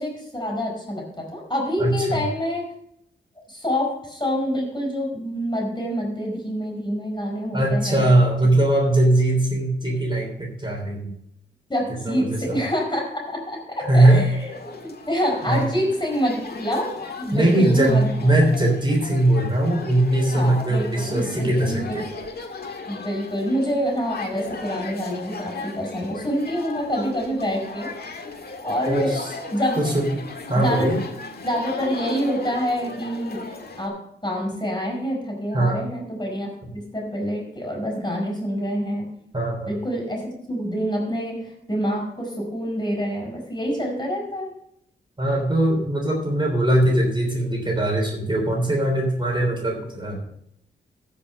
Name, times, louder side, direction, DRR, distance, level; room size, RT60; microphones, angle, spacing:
voice 1, 0.0-2.6 3.5-8.1 11.7-18.1 20.3-22.0 22.9-27.9 28.6-29.2 29.5-29.8 30.5-30.9 31.4-33.5 33.8-39.1 39.7-44.5, equal, 20° left, 0 dB, 4.9 m, -27 dB
voice 2, 1.8-2.2 7.5-11.1 12.0-12.6 13.8-14.3 15.5-15.7 17.3-22.0 28.9-29.3 29.8-30.2 30.5-31.0 35.5-35.8 39.3-39.7 45.2-50.3, right 1 dB, 25° right, 0 dB, 3.4 m, -20 dB
sound 1, 14.0-33.9, left 3 dB, 50° left, 1.8 m, -37 dB
14.0 x 5.6 x 5.5 m, 0.74 s
cardioid pair, 60°, 20 cm